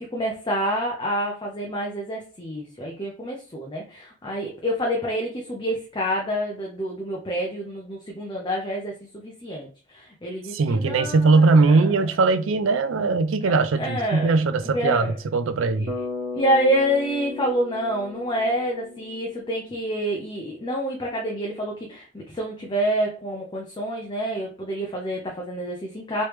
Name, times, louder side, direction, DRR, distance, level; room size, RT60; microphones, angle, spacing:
voice 1, 0.0-11.8 13.4-14.3 14.6-15.1 15.8-15.9 16.3-26.2, equal, 25° left, 0.6 m, -27 dB
voice 2, 10.5-15.9, right 3 dB, 75° right, 0.4 m, -20 dB
Bass guitar, 15.9-20.0, left 3 dB, 50° right, 1.4 m, -35 dB
3.2 x 3.1 x 3.1 m
head